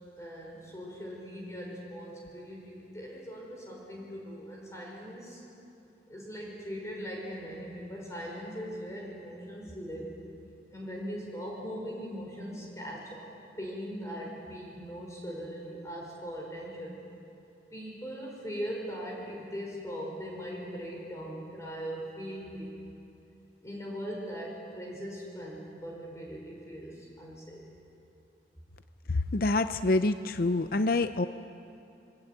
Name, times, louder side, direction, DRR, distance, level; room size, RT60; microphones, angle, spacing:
voice 1, 0.2-5.4 6.1-10.1 10.7-13.3 13.6-17.0 17.7-22.7 23.6-27.6, equal, 15° left, -3 dB, 5.4 m, -40 dB
voice 2, 29.1-31.3, left 2 dB, 55° left, 10 dB, 0.6 m, -26 dB
24.5 x 23.5 x 9.1 m, 2.7 s
head